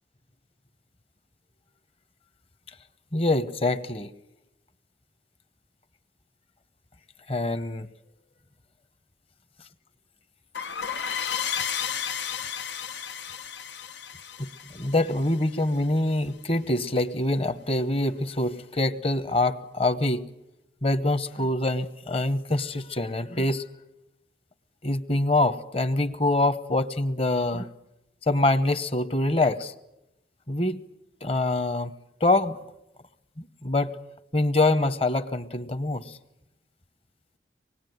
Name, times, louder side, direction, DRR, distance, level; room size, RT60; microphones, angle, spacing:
voice 1, 3.1-4.1 7.3-7.9 10.9-11.0 14.4-20.3 20.8-23.6 24.8-27.7 28.2-29.7 30.5-30.8 31.2-31.9 32.2-32.6 33.4-33.9 34.3-36.2, left 2 dB, 35° left, 12 dB, 1.1 m, -25 dB
sound 1, 10.5-15.9, left 8 dB, 90° left, 0.9 m, -33 dB
25.5 x 20.0 x 9.4 m, 0.90 s
head